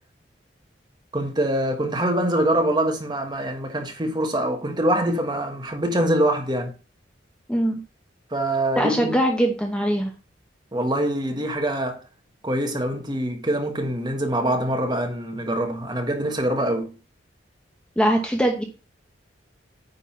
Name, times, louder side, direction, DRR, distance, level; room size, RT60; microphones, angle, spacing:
voice 1, 1.1-6.7 8.3-9.1 10.7-12.0 12.4-16.9, right 1 dB, 25° right, 1.5 m, -24 dB
voice 2, 7.5-7.8 8.8-10.1 18.0-18.6, right 1 dB, 5° left, 0.9 m, -21 dB
9.4 x 3.9 x 5.8 m
head